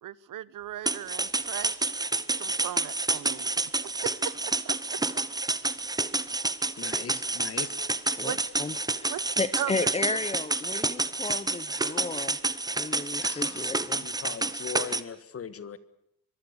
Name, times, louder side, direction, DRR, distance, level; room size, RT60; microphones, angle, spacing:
voice 1, 0.0-1.9 2.4-3.6 4.0-5.0 8.2-8.4 9.1-9.2 9.5-9.7, right 12 dB, 55° right, 20 dB, 1.0 m, -37 dB
sound 1, 0.9-15.0, right 2 dB, 10° right, 0.9 m, -29 dB
voice 2, 6.8-7.8 13.2-15.8, left 7 dB, 35° left, 15 dB, 1.6 m, -40 dB
voice 3, 8.2-12.4 12.8-14.1, left 3 dB, 15° left, 14 dB, 0.8 m, -34 dB
24.5 x 23.0 x 6.8 m, 0.75 s
cardioid pair, 130°, 38 cm